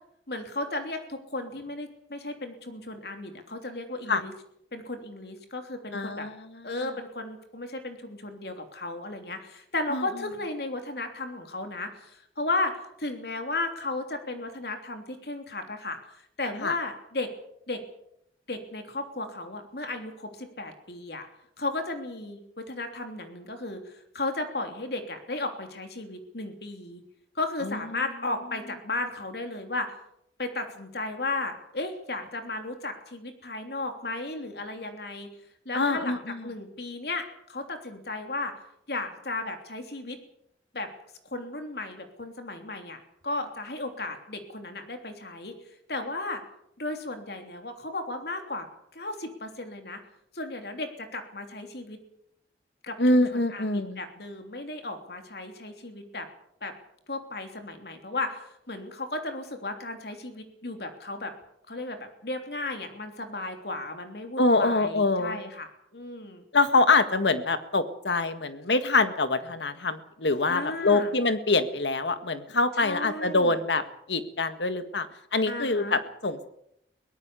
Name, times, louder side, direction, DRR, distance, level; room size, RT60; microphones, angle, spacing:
voice 1, 0.3-4.3 4.7-6.3 6.6-16.0 16.4-17.3 17.7-17.8 18.5-21.3 21.6-27.0 27.3-29.9 30.4-35.3 35.6-38.5 38.9-40.2 40.7-40.9 41.3-45.5 45.9-46.4 46.8-48.6 48.9-50.0 50.3-52.0 52.8-56.3 56.6-56.7 57.1-61.3 61.7-66.4 70.5-71.1 72.8-73.6 75.5-76.0, left 2 dB, 60° left, 5 dB, 3.3 m, -34 dB
voice 2, 5.9-6.4 6.8-6.9 9.9-10.0 16.6-16.7 27.6-27.8 35.7-36.4 53.0-54.0 64.4-65.4 66.5-73.8 74.1-75.1 75.3-76.5, left 3 dB, 80° left, 10 dB, 1.8 m, -25 dB
23.0 x 18.0 x 7.0 m, 0.75 s
head